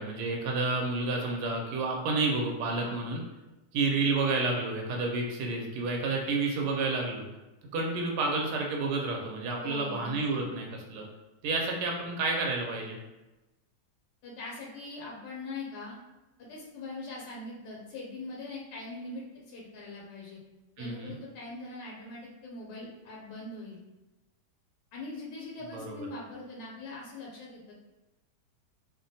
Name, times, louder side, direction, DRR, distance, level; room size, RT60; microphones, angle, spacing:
voice 1, 0.0-3.2 3.7-7.3 7.7-11.0 11.4-13.0 20.8-21.1 25.7-26.1, right 3 dB, 75° right, 0 dB, 1.1 m, -30 dB
voice 2, 2.8-3.1 9.6-10.4 14.2-16.0 16.5-20.4 20.8-23.8 24.9-27.7, left 2 dB, 85° left, -4 dB, 1.2 m, -42 dB
2.9 x 2.1 x 2.6 m, 1.0 s
omnidirectional pair, 1.8 m